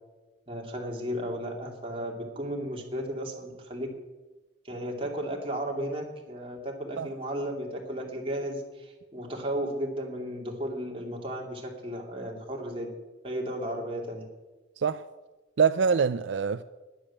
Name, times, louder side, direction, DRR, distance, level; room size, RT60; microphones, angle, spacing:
voice 1, 0.5-3.9 4.6-12.9 13.2-14.3, equal, 30° right, 2.7 m, -34 dB
voice 2, 15.6-16.6, right 6 dB, 80° right, 0.4 m, -24 dB
10.5 x 10.0 x 8.7 m
head